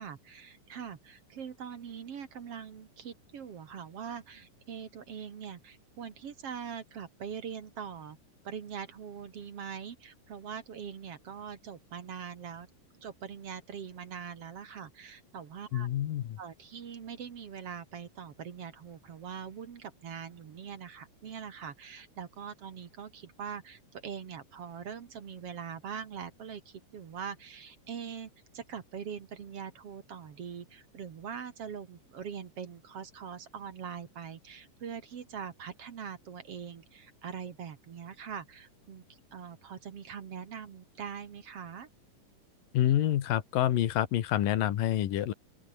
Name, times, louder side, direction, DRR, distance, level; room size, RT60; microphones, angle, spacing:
voice 1, 0.0-8.2 8.4-12.7 13.0-15.9 16.4-41.9, right 7 dB, 50° right, 2.5 m, -42 dB
voice 2, 15.7-16.4 42.7-45.3, left 12 dB, 85° left, 3.2 m, -27 dB
open air
omnidirectional pair, 3.8 m